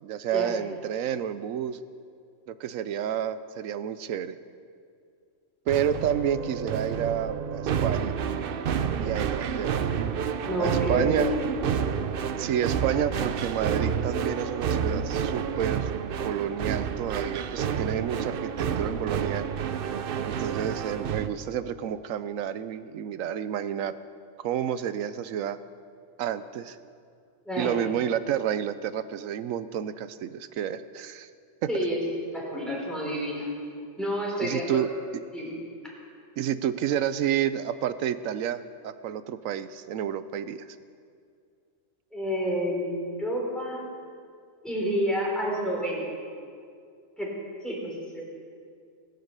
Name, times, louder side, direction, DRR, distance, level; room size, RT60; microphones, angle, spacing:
voice 1, 0.0-1.8 2.5-4.4 5.7-8.1 9.0-9.7 10.6-11.3 12.4-15.9 16.2-19.5 20.2-23.9 24.4-25.6 26.2-26.8 27.6-31.3 34.4-34.9 36.4-40.7, right 9 dB, 80° right, 13 dB, 1.0 m, -30 dB
sound 1, 5.7-21.3, right 7 dB, 55° right, 0.7 m, -29 dB
voice 2, 10.4-11.4 27.5-27.8 31.7-32.0 32.3-33.5 34.0-34.7 35.3-35.6 42.1-43.8 44.6-46.1 47.2-47.3 47.6-48.2, equal, ahead, -4 dB, 3.7 m, -29 dB
20.5 x 8.1 x 6.7 m, 2.3 s
omnidirectional pair, 1.4 m